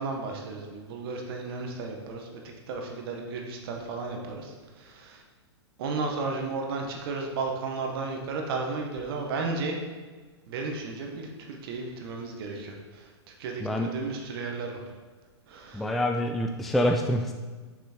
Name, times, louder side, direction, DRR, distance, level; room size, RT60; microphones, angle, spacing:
voice 1, 0.0-2.4 2.7-5.2 5.8-9.8 10.5-14.8 15.5-15.9, right 3 dB, 55° right, 2 dB, 1.2 m, -34 dB
voice 2, 13.6-13.9 15.7-17.3, left 1 dB, ahead, 3 dB, 0.3 m, -26 dB
6.0 x 5.6 x 4.4 m, 1.4 s
hypercardioid pair, 125°, 15 cm